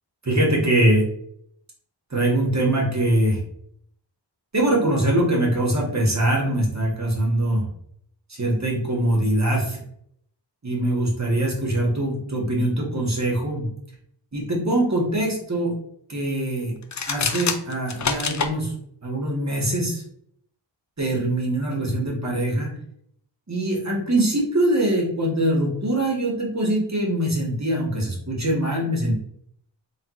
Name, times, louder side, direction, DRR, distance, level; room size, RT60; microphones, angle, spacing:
voice 1, 0.2-1.0 2.1-3.4 4.5-7.6 8.4-9.8 10.6-13.7 14.3-15.7 16.1-16.7 17.1-18.7 19.0-20.0 21.0-22.7 23.5-29.1, right 1 dB, 40° right, -2 dB, 1.6 m, -23 dB
sound 1, 16.8-18.5, left 5 dB, 40° left, 0.5 m, -26 dB
4.0 x 3.7 x 3.1 m, 0.69 s
wide cardioid pair, 70°, 44 cm